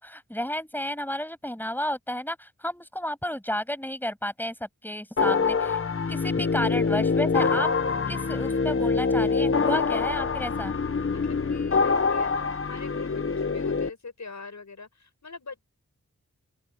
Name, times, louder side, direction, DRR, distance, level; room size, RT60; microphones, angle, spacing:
voice 1, 0.0-5.8 6.1-7.7 8.1-10.7, equal, 5° left, 7.6 m, -32 dB
sound 1, 5.2-13.9, left 4 dB, 45° left, 1.1 m, -25 dB
voice 2, 11.1-15.6, left 4 dB, 65° left, 6.8 m, -44 dB
open air
wide cardioid pair, 80°, 30 cm